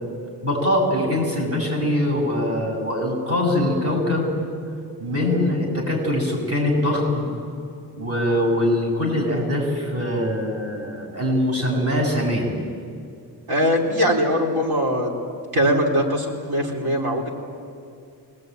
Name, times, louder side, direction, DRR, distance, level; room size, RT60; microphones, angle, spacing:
voice 1, 0.4-4.3 5.0-7.5 8.0-12.5, left 1 dB, 35° right, -2 dB, 7.3 m, -22 dB
voice 2, 13.5-15.2 15.5-17.3, equal, 65° right, 0 dB, 4.0 m, -21 dB
24.0 x 19.5 x 9.4 m, 2.4 s
wide cardioid pair, 155°, 39 cm